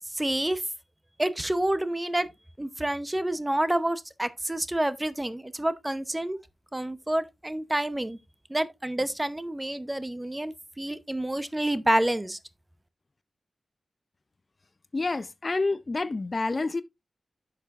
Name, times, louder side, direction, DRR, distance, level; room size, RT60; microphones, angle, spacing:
voice 1, 0.1-0.6 1.2-2.3 2.6-6.4 6.7-8.2 8.5-12.4, right 1 dB, 15° right, 0.7 m, -28 dB
voice 2, 14.9-16.8, left 3 dB, 40° left, 0.5 m, -28 dB
10.0 x 6.6 x 2.5 m
wide cardioid pair, 70°, 0 cm